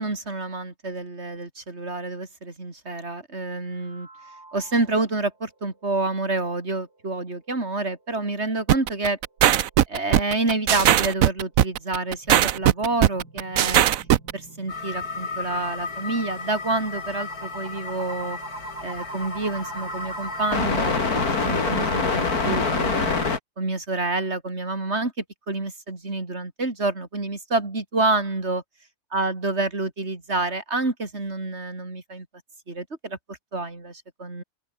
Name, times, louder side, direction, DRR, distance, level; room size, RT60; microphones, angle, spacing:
voice 1, 0.0-4.1 4.5-9.2 9.9-13.9 14.3-18.4 18.8-23.2 23.6-25.1 25.5-28.6 29.1-32.3 32.7-34.4, right 2 dB, 40° right, 3.9 m, -28 dB
sound 1, 3.7-5.1 5.5-5.6 6.0-6.1 6.6-6.7 11.5-23.3, right 2 dB, 80° right, 6.9 m, -40 dB
sound 2, 8.7-14.3, right 11 dB, 65° right, 1.1 m, -18 dB
sound 3, 14.7-23.4, left 4 dB, 65° left, 3.2 m, -28 dB
open air
omnidirectional pair, 1.7 m